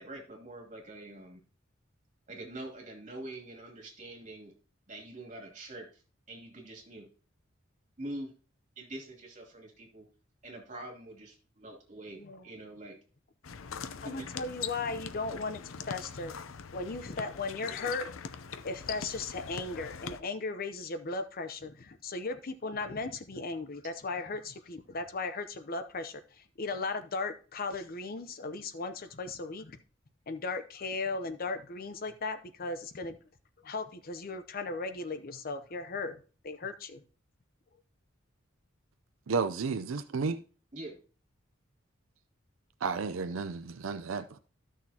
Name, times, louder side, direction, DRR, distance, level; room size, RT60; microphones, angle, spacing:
voice 1, 0.0-1.4 2.3-4.5 4.9-6.0 6.3-7.1 8.0-8.3 8.8-10.1 10.4-13.0 14.0-14.3 40.7-41.0, right 1 dB, 40° right, 2.7 m, -44 dB
sound 1, 13.4-20.2, left 6 dB, 90° left, 0.6 m, -42 dB
voice 2, 13.9-15.6 15.9-16.4 16.7-18.1 18.6-29.8 30.3-33.2 33.6-37.0, left 3 dB, 45° left, 0.7 m, -37 dB
voice 3, 39.3-40.4 42.8-44.4, right 4 dB, 85° right, 0.5 m, -32 dB
13.5 x 6.4 x 2.8 m
head